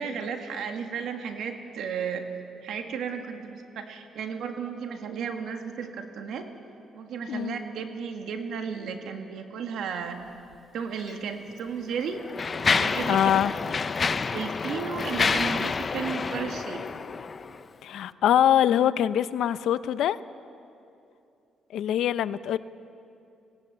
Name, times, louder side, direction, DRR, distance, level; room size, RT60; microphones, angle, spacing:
voice 1, 0.0-2.3 2.6-6.5 6.9-10.2 10.7-12.2 12.6-13.4 14.3-16.8, right 6 dB, 75° right, 5 dB, 1.8 m, -34 dB
Mechanisms, 11.0-11.2 11.9-17.6, left 5 dB, 35° left, 0.6 m, -28 dB
voice 2, 13.1-13.5 17.8-20.2 21.7-22.6, left 10 dB, 75° left, 15 dB, 0.5 m, -23 dB
19.0 x 17.0 x 8.3 m, 2.6 s
cardioid pair, 90°, 0 cm